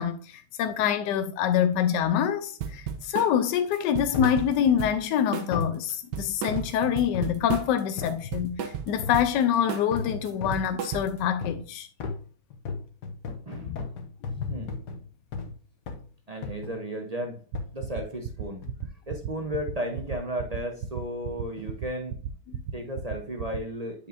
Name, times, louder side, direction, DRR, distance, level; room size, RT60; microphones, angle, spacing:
voice 1, 0.0-11.9 13.6-13.8 14.4-14.5 22.5-22.6, left 9 dB, 90° left, 1.2 m, -26 dB
sound 1, 2.6-3.3 3.7-5.1 5.3-5.6 5.9-7.8 8.1-9.3 9.7-10.0 10.2-11.3, right 7 dB, 85° right, 1.4 m, -34 dB
sound 2, 4.1-4.5 5.5-5.8 6.5-7.4 8.0-8.2 9.0-9.3 9.9-10.7 11.4-11.7 12.0-15.6 15.9-16.1 16.4-16.8 17.5-17.8 18.6-18.9 19.5-19.6, left 4 dB, 70° left, 1.5 m, -35 dB
voice 2, 13.5-13.9 14.5-14.7 16.3-17.4 17.7-18.6 19.1-22.2 22.7-24.1, right 1 dB, 35° right, 0.6 m, -34 dB
sound 3, 17.5-23.6, right 10 dB, 65° right, 0.9 m, -33 dB
9.3 x 5.1 x 2.6 m
omnidirectional pair, 1.8 m